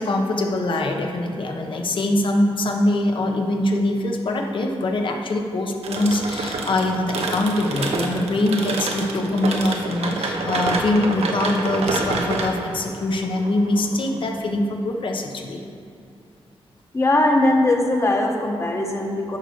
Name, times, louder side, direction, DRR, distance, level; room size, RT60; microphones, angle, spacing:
voice 1, 0.0-15.6, left 1 dB, 55° left, 2 dB, 1.0 m, -23 dB
sound 1, 5.8-14.5, right 3 dB, 85° right, 0.9 m, -28 dB
voice 2, 16.9-19.4, left 2 dB, 30° left, 1 dB, 1.1 m, -20 dB
10.5 x 4.1 x 6.5 m, 2.5 s
wide cardioid pair, 140°, 10 cm